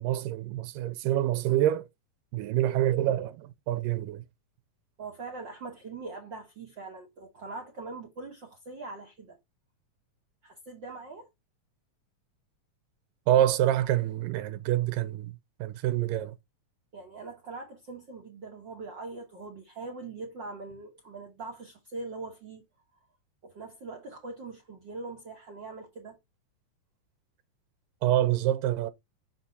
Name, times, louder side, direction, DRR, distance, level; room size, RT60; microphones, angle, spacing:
voice 1, 0.0-1.9 2.3-4.2 13.3-15.3 15.6-16.3 28.0-28.9, right 12 dB, 90° right, 2.3 m, -26 dB
voice 2, 5.0-9.4 10.4-11.3 16.9-22.6 23.4-26.2, right 3 dB, 65° right, 1.1 m, -42 dB
6.6 x 4.4 x 3.8 m
omnidirectional pair, 3.8 m